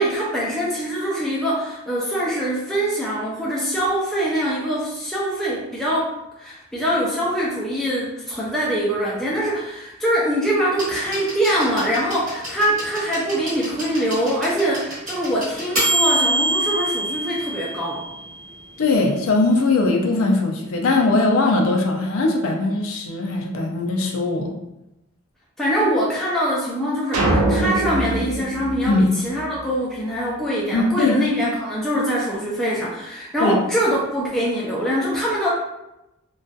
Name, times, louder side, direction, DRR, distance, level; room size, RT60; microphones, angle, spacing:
voice 1, 0.0-6.1 6.4-18.0 25.6-35.5, equal, ahead, -7 dB, 0.3 m, -23 dB
sound 1, 10.8-18.5 19.7-19.8, right 1 dB, 35° right, 0.8 m, -26 dB
voice 2, 18.8-24.5 28.9-29.1 30.7-31.2 33.4-33.5, left 2 dB, 75° left, 1 dB, 0.4 m, -20 dB
sound 2, 27.1-29.7, right 2 dB, 90° right, 0.5 m, -23 dB
2.6 x 2.3 x 2.2 m, 0.92 s
head